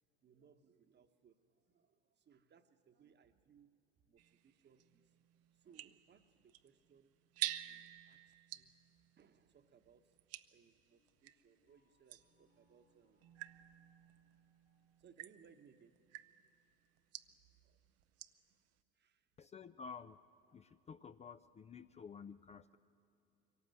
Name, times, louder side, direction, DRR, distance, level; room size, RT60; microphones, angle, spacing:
voice 1, 0.2-3.8 4.0-5.2 5.5-7.2 7.6-8.7 9.2-10.2 10.5-13.3 13.7-13.8 14.0-14.2 15.0-16.6 17.3-17.4 17.6-18.0 18.5-18.7 18.9-19.3 22.0-22.1, right 7 dB, 35° right, 9 dB, 1.1 m, -68 dB
sound 1, 4.2-11.4 12.1-18.5, right 13 dB, 55° right, 0.7 m, -50 dB
sound 2, 10.8-15.9, left 3 dB, 90° left, 4.7 m, -80 dB
voice 2, 19.4-20.2 20.5-22.8, left 6 dB, 20° left, 11 dB, 0.4 m, -52 dB
24.0 x 18.0 x 7.7 m, 2.9 s
hypercardioid pair, 75°, 30 cm